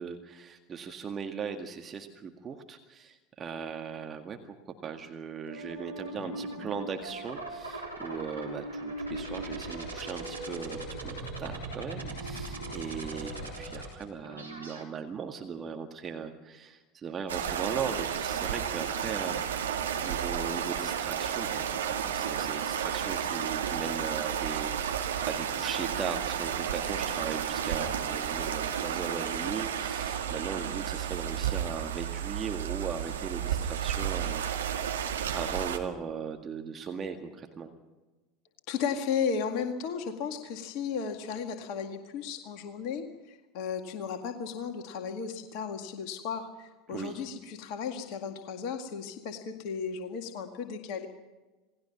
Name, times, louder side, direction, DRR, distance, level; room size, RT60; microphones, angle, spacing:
voice 1, 0.0-19.4 20.0-34.4 34.8-37.7 46.9-47.2, right 6 dB, 30° right, 5 dB, 1.9 m, -38 dB
sound 1, 5.5-14.8, right 2 dB, 85° right, 3.8 m, -39 dB
sound 2, 17.3-35.8, right 8 dB, 70° right, 1.9 m, -32 dB
voice 2, 38.7-51.1, left 6 dB, 50° left, 5 dB, 1.9 m, -35 dB
27.5 x 19.0 x 6.0 m, 1.2 s
figure-of-eight pair, 75°, 0 cm